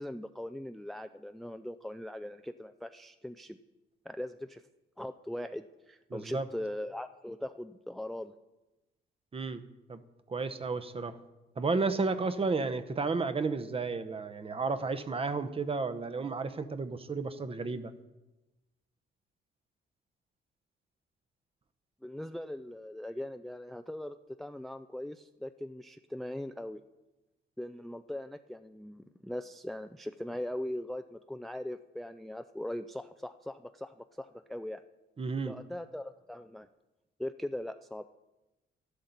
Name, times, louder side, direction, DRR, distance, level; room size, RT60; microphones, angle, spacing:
voice 1, 0.0-3.6 4.1-4.6 5.0-8.3 22.0-26.8 27.6-34.8 35.5-36.7 37.2-38.0, left 1 dB, ahead, 10 dB, 0.4 m, -40 dB
voice 2, 6.1-6.4 9.3-9.6 9.9-10.0 10.3-11.2 11.6-17.9 35.2-35.5, right 4 dB, 30° right, 12 dB, 0.8 m, -32 dB
12.5 x 11.5 x 4.0 m, 1.0 s
cardioid pair, 90°, 20 cm